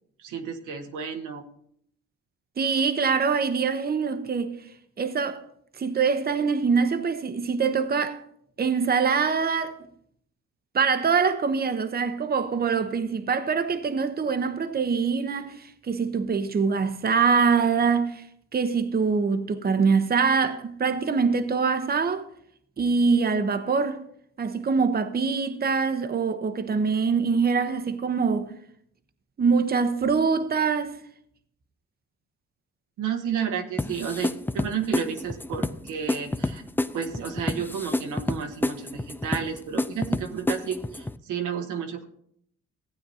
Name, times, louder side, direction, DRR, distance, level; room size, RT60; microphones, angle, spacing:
voice 1, 0.2-1.5 33.0-36.6 36.9-42.1, right 7 dB, 85° right, 1.3 m, -31 dB
voice 2, 2.6-4.6 5.0-5.4 5.8-8.2 8.6-9.8 10.7-18.2 18.5-22.3 22.8-24.0 24.4-28.5 29.4-31.0, right 5 dB, 30° right, 0.8 m, -24 dB
sound 1, 33.8-41.2, left 2 dB, 5° left, 0.3 m, -29 dB
15.5 x 8.9 x 2.8 m
cardioid pair, 90°, 30 cm